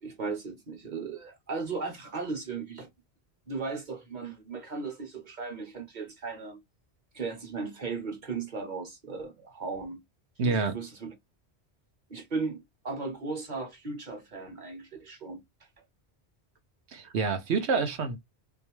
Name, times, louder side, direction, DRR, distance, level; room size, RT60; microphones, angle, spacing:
voice 1, 0.0-2.9 3.5-6.6 7.1-10.0 10.4-11.1 12.1-15.4, right 4 dB, 45° right, 1.4 m, -36 dB
voice 2, 10.4-10.7 16.9-18.2, right 4 dB, 85° right, 1.2 m, -27 dB
3.5 x 3.0 x 3.0 m
omnidirectional pair, 1.1 m